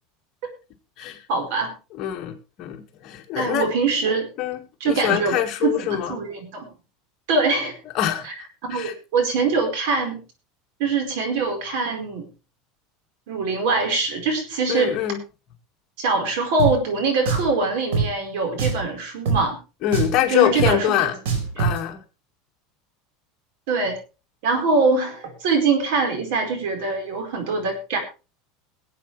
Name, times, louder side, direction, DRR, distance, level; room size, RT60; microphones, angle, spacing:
voice 1, 1.3-1.7 3.4-4.3 4.8-6.7 7.3-7.7 8.2-8.3 8.6-10.2 10.8-12.3 13.3-15.0 16.0-19.6 20.3-21.1 21.6-21.7 23.7-24.0 24.4-28.0, right 3 dB, 65° right, 5 dB, 4.5 m, -23 dB
voice 2, 2.0-3.7 4.4-4.6 4.8-6.2 7.9-8.3 8.7-8.9 14.7-15.2 19.8-21.2 21.6-22.0, left 11 dB, 40° left, 3 dB, 2.0 m, -24 dB
Drum, 16.6-16.7 17.3-17.5 17.9-18.1 18.6-18.9 19.3-19.4 19.9-20.2 20.6-20.7 21.3-21.8, right 5 dB, 85° right, 4.7 m, -22 dB
22.5 x 8.3 x 3.3 m, 0.31 s
supercardioid pair, 155°, 0 cm